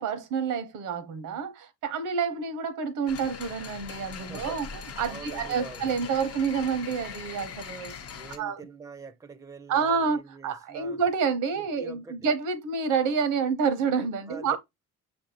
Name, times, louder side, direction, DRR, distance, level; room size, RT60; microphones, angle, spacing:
voice 1, 0.0-7.9 8.4-8.7 9.7-14.6, right 6 dB, 85° right, 0.8 m, -28 dB
sound 1, 3.1-8.4, left 6 dB, 50° left, 0.6 m, -41 dB
voice 2, 4.3-4.8 5.1-5.9 8.1-11.0 11.6-12.2 14.3-14.6, right 5 dB, 10° right, 0.4 m, -45 dB
5.9 x 2.6 x 2.8 m
cardioid pair, 90°, 30 cm